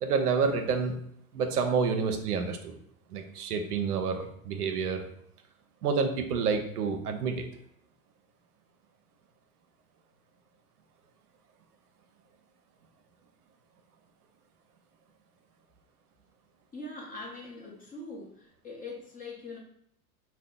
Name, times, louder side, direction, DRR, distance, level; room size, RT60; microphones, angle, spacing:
voice 1, 0.0-1.0 1.3-2.7 3.1-5.1 5.8-7.4, right 5 dB, 85° right, 6 dB, 0.6 m, -28 dB
voice 2, 16.7-19.6, left 2 dB, 20° left, -2 dB, 0.8 m, -42 dB
2.7 x 2.2 x 3.5 m, 0.69 s
hypercardioid pair, 95°, 45 cm